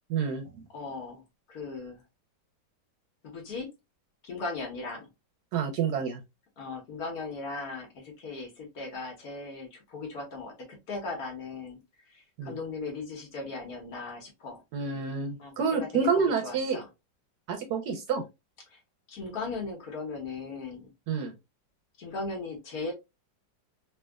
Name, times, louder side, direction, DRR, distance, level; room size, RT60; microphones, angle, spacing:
voice 1, 0.1-0.5 5.5-6.2 12.4-12.6 14.7-16.8 17.5-18.2 21.1-21.3, right 5 dB, 70° right, 1.0 m, -28 dB
voice 2, 0.7-1.2 1.5-2.0 3.2-3.7 4.2-5.1 6.6-11.8 12.1-14.6 15.4-16.9 18.7-18.8 19.1-20.9 22.0-22.9, left 3 dB, 60° left, 1.3 m, -38 dB
3.3 x 2.7 x 2.2 m
omnidirectional pair, 2.0 m